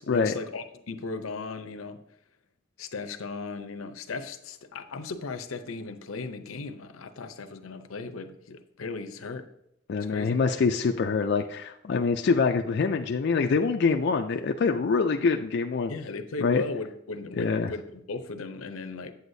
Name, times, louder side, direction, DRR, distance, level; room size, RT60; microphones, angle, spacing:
voice 1, 0.0-2.0 2.8-9.5 10.0-10.4 15.9-19.1, left 3 dB, 85° left, 9 dB, 0.7 m, -36 dB
voice 2, 9.9-15.9 16.4-16.6 17.4-17.7, left 4 dB, 55° left, 4 dB, 0.3 m, -25 dB
8.4 x 8.0 x 2.7 m, 0.79 s
head